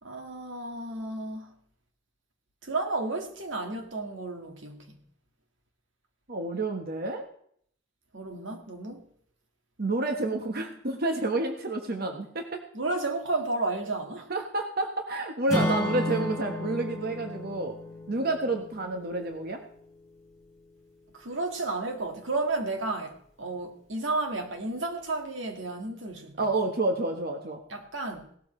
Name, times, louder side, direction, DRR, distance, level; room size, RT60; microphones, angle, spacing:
voice 1, 0.0-1.5 2.6-5.0 8.1-9.0 10.2-10.6 12.7-14.3 21.1-26.4 27.7-28.3, right 2 dB, 85° right, 4 dB, 2.0 m, -32 dB
voice 2, 6.3-7.3 9.8-12.6 14.3-17.8 18.1-19.6 26.4-27.6, right 2 dB, 55° right, 4 dB, 1.3 m, -29 dB
Acoustic guitar / Strum, 15.5-19.6, left 1 dB, ahead, 7.2 m, -33 dB
17.5 x 12.5 x 3.3 m, 0.64 s
head